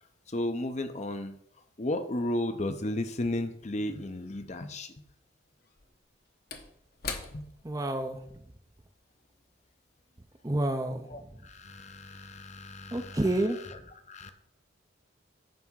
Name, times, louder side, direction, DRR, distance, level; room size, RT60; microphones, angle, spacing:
voice 1, 0.0-1.4 1.8-5.0 7.3-7.5 11.1-13.8 14.1-14.3, left 1 dB, 35° left, 9 dB, 0.7 m, -34 dB
Slam / Wood, 4.0-4.1 5.6-10.3 10.6-10.8, left 5 dB, 55° left, 1.0 m, -44 dB
voice 2, 7.6-8.4 10.4-11.1 12.9-13.8, right 1 dB, 20° right, 7 dB, 0.5 m, -29 dB
9.3 x 3.5 x 6.3 m, 0.70 s
head